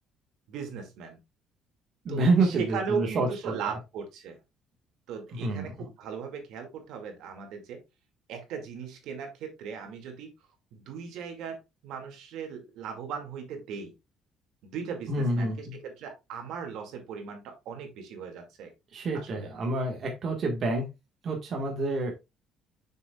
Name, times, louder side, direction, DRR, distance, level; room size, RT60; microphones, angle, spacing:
voice 1, 0.5-1.2 2.1-4.4 5.1-7.8 8.3-10.3 10.7-13.9 14.6-18.7 19.1-19.5, right 6 dB, 70° right, 4 dB, 2.3 m, -38 dB
voice 2, 2.0-3.5 5.4-5.7 15.1-15.7 18.9-20.9 21.2-22.1, right 2 dB, 40° right, 1 dB, 1.6 m, -28 dB
7.3 x 6.3 x 2.4 m, 0.23 s
cardioid pair, 170°, 0 cm